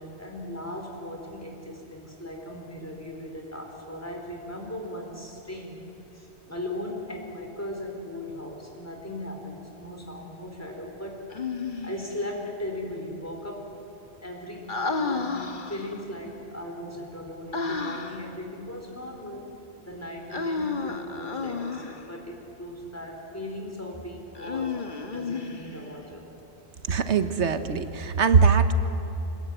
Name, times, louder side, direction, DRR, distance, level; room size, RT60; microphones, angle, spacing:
voice 1, 0.0-5.9 6.1-11.3 11.8-13.7 14.2-15.4 15.7-19.5 19.8-24.8 25.1-26.3, left 1 dB, 15° left, 1 dB, 4.3 m, -38 dB
Human voice, 11.3-12.2 14.7-16.0 17.5-18.3 20.3-22.1 24.4-26.0, left 4 dB, 45° left, 1.6 m, -32 dB
voice 2, 26.9-28.7, right 5 dB, 90° right, 10 dB, 1.4 m, -21 dB
25.5 x 21.0 x 9.2 m, 2.9 s
omnidirectional pair, 1.1 m